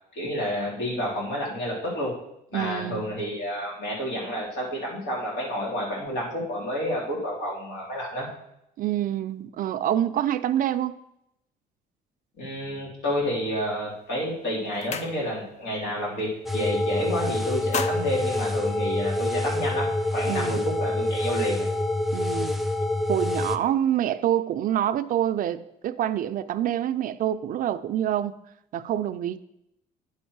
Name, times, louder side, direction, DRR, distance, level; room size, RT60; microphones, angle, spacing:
voice 1, 0.1-2.2 2.5-8.3 12.4-21.7, equal, 80° left, 3.3 m, -30 dB
voice 2, 2.5-3.0 8.8-11.0 20.3-20.6 22.1-22.6 23.1-28.3 28.7-29.4, right 11 dB, 55° right, 0.4 m, -26 dB
sound 1, 13.9-14.1 14.5-15.6 16.0-16.2 16.5-17.1 17.4-19.3, left 6 dB, 40° left, 0.6 m, -35 dB
sound 2, 16.5-23.6, left 1 dB, ahead, 0.4 m, -26 dB
9.8 x 4.3 x 4.7 m
cardioid pair, 110°, 17 cm